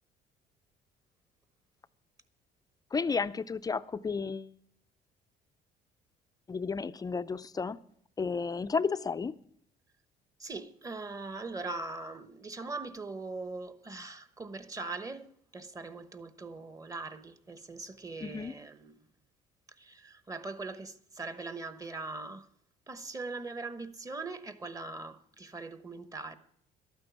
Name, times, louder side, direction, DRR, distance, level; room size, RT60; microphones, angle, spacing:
voice 1, 2.9-4.5 6.5-7.8 8.2-9.4 18.2-18.5, left 5 dB, 20° left, 0.4 m, -32 dB
voice 2, 10.4-18.9 19.8-22.5 22.9-26.4, right 3 dB, 20° right, 1.0 m, -41 dB
12.5 x 9.0 x 7.0 m
cardioid pair, 110°, 17 cm